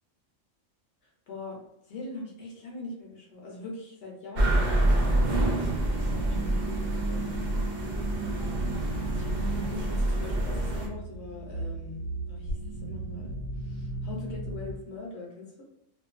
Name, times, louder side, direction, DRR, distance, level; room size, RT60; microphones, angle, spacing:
voice 1, 1.3-1.6 1.9-5.1 5.9-7.5 9.1-15.6, left 2 dB, 65° left, -2 dB, 0.8 m, -42 dB
sound 1, 4.3-10.9, right 1 dB, 65° right, 0.4 m, -27 dB
sound 2, 5.2-14.8, right 2 dB, 90° right, 1.0 m, -36 dB
2.5 x 2.2 x 2.4 m, 0.80 s
omnidirectional pair, 1.4 m